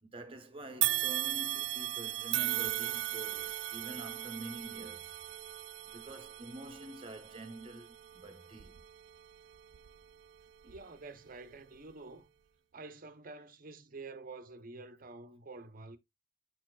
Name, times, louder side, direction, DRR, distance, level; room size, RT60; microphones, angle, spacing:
voice 1, 0.0-5.2 5.9-8.8, right 1 dB, 30° right, 1.1 m, -47 dB
sound 1, 0.8-10.1 10.6-10.8 11.8-11.9, right 15 dB, 70° right, 0.3 m, -37 dB
voice 2, 10.6-12.3 12.7-16.0, right 3 dB, 50° right, 0.8 m, -48 dB
9.3 x 4.4 x 2.4 m
head